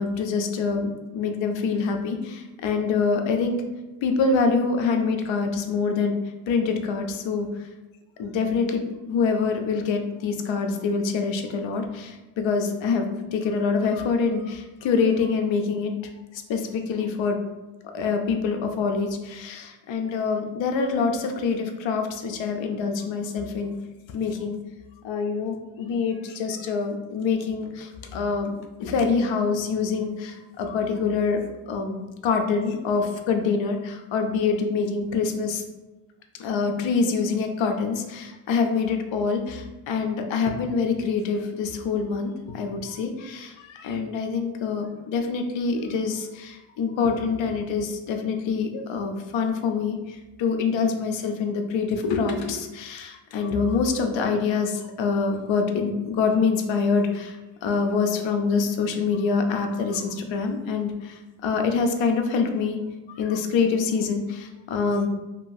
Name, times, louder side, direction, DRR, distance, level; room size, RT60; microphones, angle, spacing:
voice 1, 0.0-3.6 4.0-6.2 6.5-7.5 8.2-15.9 16.3-17.4 17.9-23.7 24.1-24.6 25.0-28.5 28.8-31.4 31.7-35.6 36.4-62.8 63.1-65.1, left 5 dB, 70° left, 5 dB, 0.5 m, -25 dB
2.9 x 2.3 x 2.5 m, 1.1 s
cardioid pair, 110°, 47 cm